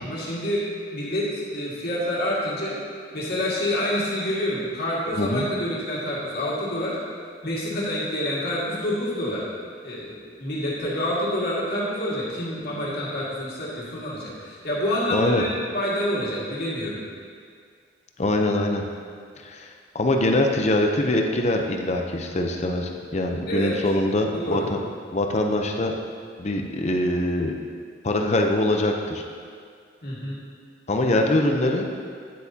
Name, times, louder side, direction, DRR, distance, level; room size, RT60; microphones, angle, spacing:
voice 1, 0.0-2.8 3.1-7.0 7.4-9.5 9.8-17.0 23.5-23.7 24.3-24.7 30.0-30.4, equal, 55° left, -6 dB, 2.0 m, -27 dB
voice 2, 15.1-15.4 18.2-18.8 19.4-24.8 25.1-25.9 26.4-27.5 28.0-29.2 30.9-31.9, left 1 dB, 35° left, 3 dB, 0.6 m, -23 dB
9.4 x 8.1 x 2.8 m, 2.1 s
head